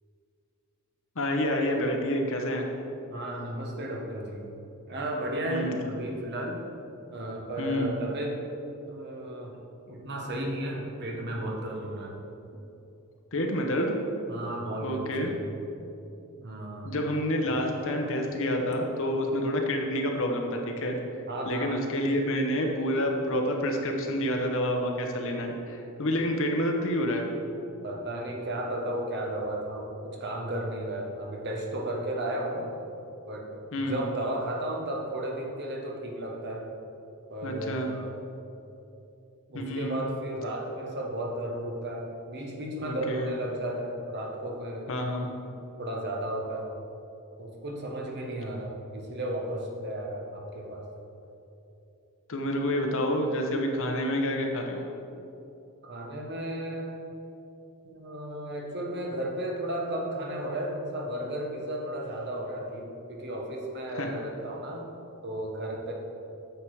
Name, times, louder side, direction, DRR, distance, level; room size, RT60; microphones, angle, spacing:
voice 1, 1.2-2.7 5.4-5.7 7.6-7.9 13.3-14.0 14.8-15.3 16.8-21.0 21.5-27.2 33.7-34.0 37.4-37.9 39.5-40.0 42.8-43.3 44.9-45.3 52.3-54.8 63.9-64.1, equal, 65° left, 2 dB, 1.1 m, -28 dB
voice 2, 3.1-4.4 4.9-6.6 7.1-8.4 8.9-9.5 9.9-12.1 14.3-15.4 16.4-16.9 21.3-21.8 27.8-32.6 33.3-36.6 37.3-38.2 39.5-44.9 45.2-45.3 45.8-46.7 47.4-50.8 55.8-57.0 57.8-64.8 65.2-65.9, right 1 dB, 50° right, 0 dB, 1.3 m, -34 dB
9.2 x 7.0 x 4.9 m, 2.9 s
head